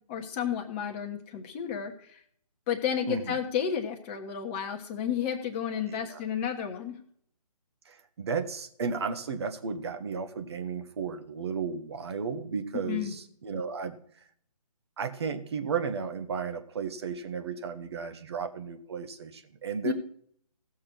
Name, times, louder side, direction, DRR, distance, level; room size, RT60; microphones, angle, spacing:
voice 1, 0.1-1.9 2.7-6.9 12.9-13.1 19.8-19.9, left 8 dB, 20° left, 3 dB, 1.3 m, -31 dB
voice 2, 3.0-3.4 5.9-6.2 7.8-14.0 15.0-19.9, right 5 dB, 40° right, 8 dB, 1.4 m, -34 dB
16.5 x 6.3 x 6.1 m, 0.62 s
figure-of-eight pair, 145°, 20 cm